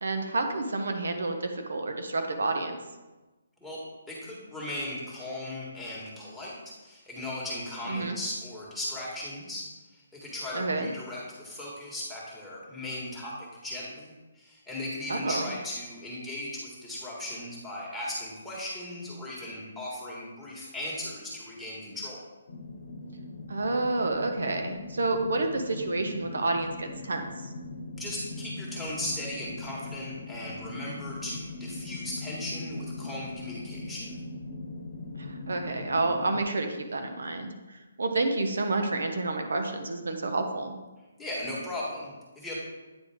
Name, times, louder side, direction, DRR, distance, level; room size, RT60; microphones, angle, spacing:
voice 1, 0.0-2.8 7.9-8.2 10.5-10.9 15.1-15.5 23.5-27.2 35.2-40.7, right 2 dB, 80° right, 5 dB, 0.9 m, -29 dB
voice 2, 4.1-6.6 6.8-13.3 13.6-22.2 27.9-34.2 41.2-42.6, left 1 dB, ahead, -8 dB, 1.5 m, -37 dB
sound 1, 22.5-36.4, left 2 dB, 65° left, 0.9 m, -40 dB
8.9 x 3.8 x 3.5 m, 1.1 s
hypercardioid pair, 160°, 0 cm